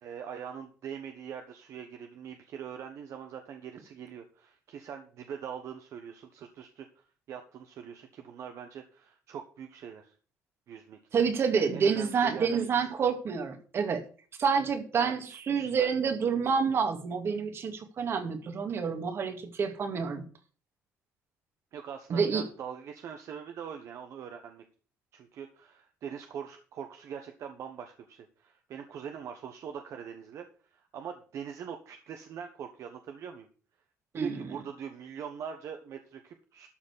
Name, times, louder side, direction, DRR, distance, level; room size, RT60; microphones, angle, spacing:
voice 1, 0.0-10.1 10.7-11.0 11.6-12.9 15.0-15.9 21.7-24.6 25.1-33.5 34.1-36.7, right 7 dB, 65° right, 5 dB, 1.3 m, -43 dB
voice 2, 11.1-14.0 14.4-20.2 22.1-22.4 34.1-34.4, right 6 dB, 50° right, 7 dB, 2.2 m, -28 dB
13.0 x 4.4 x 8.1 m, 0.40 s
cardioid pair, 115°, 5 cm